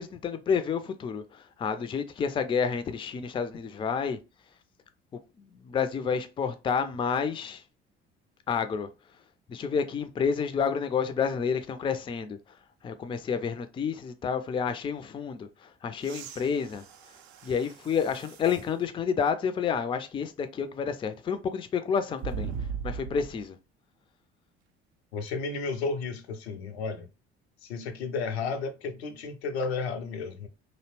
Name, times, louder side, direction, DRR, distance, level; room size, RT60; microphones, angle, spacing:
voice 1, 0.0-4.2 5.1-7.6 8.5-8.9 9.5-12.4 12.8-16.8 17.4-22.5 22.8-23.6, left 6 dB, 15° left, 0.3 m, -29 dB
sound 1, 16.0-18.7 19.4-19.5 22.2-23.4 25.3-25.4, right 6 dB, 75° right, 0.5 m, -39 dB
voice 2, 25.1-27.1 27.6-30.5, left 4 dB, 80° left, 0.5 m, -33 dB
2.6 x 2.0 x 3.0 m
figure-of-eight pair, 50°, 32 cm